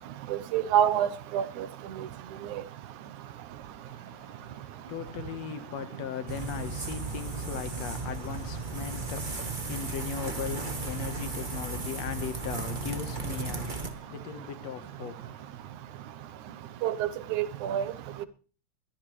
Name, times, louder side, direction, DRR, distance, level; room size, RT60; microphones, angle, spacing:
voice 1, 0.5-1.1 1.3-1.7 16.8-17.8, right 10 dB, 80° right, 2.3 m, -26 dB
voice 2, 3.8-16.1, left 8 dB, 65° left, 2.3 m, -38 dB
sound 1, 6.3-13.9, right 3 dB, 40° right, 0.7 m, -35 dB
21.5 x 14.0 x 3.3 m
omnidirectional pair, 3.4 m